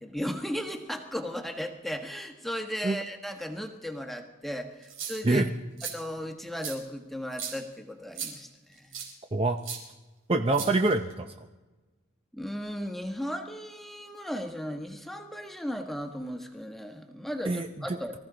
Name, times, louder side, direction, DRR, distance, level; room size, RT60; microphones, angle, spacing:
voice 1, 0.0-5.4 5.9-8.5 8.8-9.0 12.3-18.1, equal, ahead, 4 dB, 1.2 m, -36 dB
sound 1, 4.8-5.4 5.8-5.9 6.6-6.7 7.3-7.6 8.1-8.3 8.9-9.1 9.6-9.8 10.5-11.1, right 7 dB, 85° right, 4.3 m, -37 dB
voice 2, 10.3-11.3 17.5-18.0, right 2 dB, 25° right, 6 dB, 0.6 m, -25 dB
24.0 x 14.5 x 3.9 m, 1.2 s
head